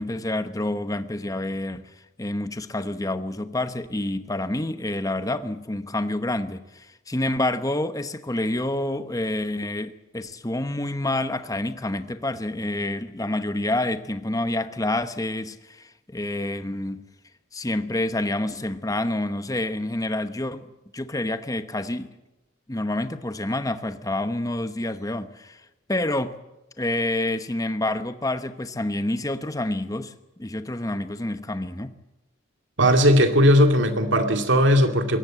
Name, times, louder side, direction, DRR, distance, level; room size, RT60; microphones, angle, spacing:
voice 1, 0.0-1.9 2.2-17.0 17.5-20.7 20.9-22.1 22.7-25.6 25.9-26.4 26.8-30.1 30.4-31.9, left 1 dB, 15° left, 1.0 m, -28 dB
voice 2, 32.8-35.2, equal, 70° right, 2.4 m, -18 dB
22.0 x 18.0 x 7.7 m
head